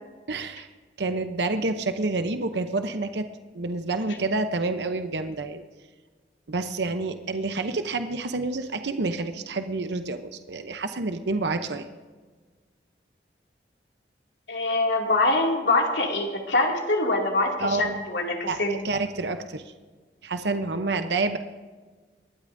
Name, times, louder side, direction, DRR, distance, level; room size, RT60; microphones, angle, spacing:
voice 1, 0.3-0.7 1.0-3.3 3.5-5.6 6.5-11.9 17.6-18.0 18.5-19.7 20.2-21.4, right 3 dB, 70° right, 8 dB, 0.8 m, -28 dB
voice 2, 14.5-18.9, left 2 dB, 75° left, 0 dB, 2.5 m, -24 dB
23.5 x 12.0 x 2.7 m, 1.4 s
head